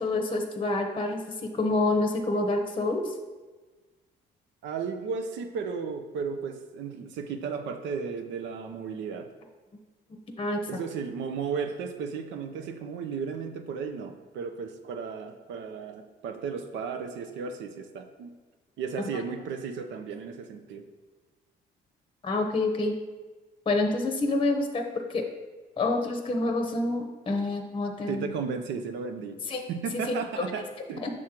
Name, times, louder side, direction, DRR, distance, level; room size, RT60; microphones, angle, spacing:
voice 1, 0.0-3.1 10.1-10.6 19.1-19.2 22.2-22.9 23.7-25.2 25.8-28.3 29.5-29.6 31.0-31.1, left 2 dB, 30° left, 4 dB, 0.8 m, -27 dB
voice 2, 4.6-9.3 10.7-18.3 18.8-20.8 28.1-29.4 29.7-31.0, right 5 dB, 80° right, 7 dB, 0.6 m, -34 dB
6.3 x 3.6 x 4.4 m, 1.3 s
cardioid pair, 85°, 19 cm